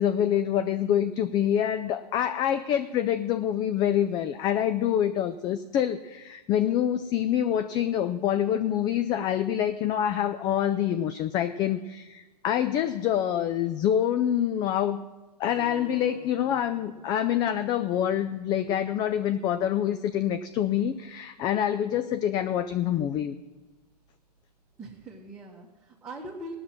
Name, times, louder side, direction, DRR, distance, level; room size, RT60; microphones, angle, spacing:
voice 1, 0.0-15.1 15.4-23.3, left 10 dB, 20° left, 11 dB, 0.3 m, -26 dB
sound 1, 15.5-20.6, left 4 dB, 55° left, 3.1 m, -50 dB
voice 2, 24.8-26.5, right 1 dB, 10° right, -4 dB, 1.4 m, -42 dB
17.5 x 6.2 x 7.3 m, 1.1 s
figure-of-eight pair, 105°, 21 cm